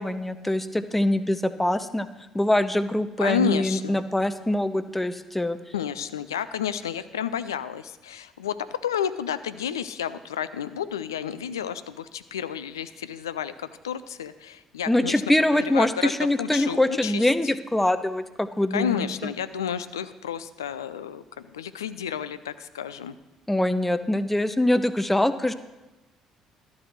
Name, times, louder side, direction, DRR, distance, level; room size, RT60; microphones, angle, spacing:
voice 1, 0.0-2.1 2.3-5.6 14.9-19.3 23.5-25.5, left 1 dB, 10° left, 13 dB, 0.6 m, -24 dB
voice 2, 3.2-4.0 5.7-8.5 8.8-15.2 15.5-16.1 16.4-17.3 18.7-23.1, left 8 dB, 80° left, 13 dB, 0.3 m, -31 dB
12.0 x 4.7 x 6.4 m, 1.1 s
figure-of-eight pair, 50°, 2 cm